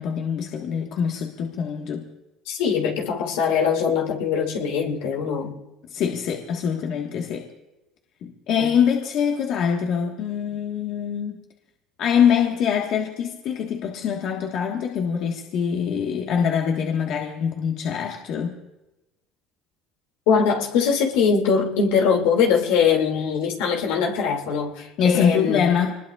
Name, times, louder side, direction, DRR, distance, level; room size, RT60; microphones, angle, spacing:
voice 1, 0.0-2.0 5.9-7.5 8.2-11.4 12.0-18.6 25.0-25.9, left 7 dB, 60° left, 1 dB, 1.5 m, -24 dB
voice 2, 2.5-5.5 8.6-8.7 20.3-25.7, left 6 dB, 85° left, 1 dB, 2.5 m, -22 dB
25.5 x 20.0 x 2.4 m, 1.0 s
supercardioid pair, 95°, 0 cm